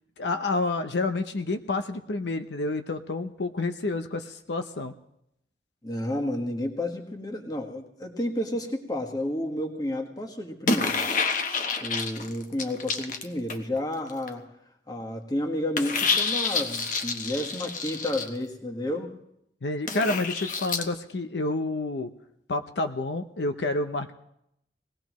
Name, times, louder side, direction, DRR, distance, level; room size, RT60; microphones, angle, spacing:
voice 1, 0.2-4.9 19.6-22.1 22.5-24.1, left 2 dB, 75° left, 8 dB, 0.6 m, -29 dB
voice 2, 5.8-11.0 11.8-14.4 14.9-19.1, left 1 dB, 20° left, 3 dB, 1.4 m, -31 dB
sound 1, 10.6-13.8 14.1-14.3 15.8-18.3 19.9-20.8, left 4 dB, 45° left, 1.0 m, -28 dB
20.0 x 17.5 x 3.1 m, 0.79 s
head